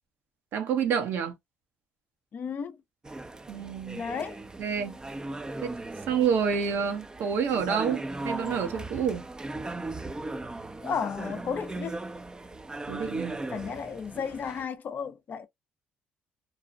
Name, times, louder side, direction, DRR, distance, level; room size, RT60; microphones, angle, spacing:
voice 1, 0.5-1.3 3.5-4.0 4.6-5.0 5.6-5.7 6.1-9.2 12.9-13.4, right 7 dB, 70° right, 0.7 m, -28 dB
voice 2, 2.3-2.8 3.9-4.4 10.8-12.0 13.5-15.5, left 6 dB, 50° left, 0.4 m, -33 dB
sound 1, 3.0-14.7, right 2 dB, 20° right, 0.4 m, -38 dB
2.6 x 2.0 x 2.4 m
supercardioid pair, 70°, 4 cm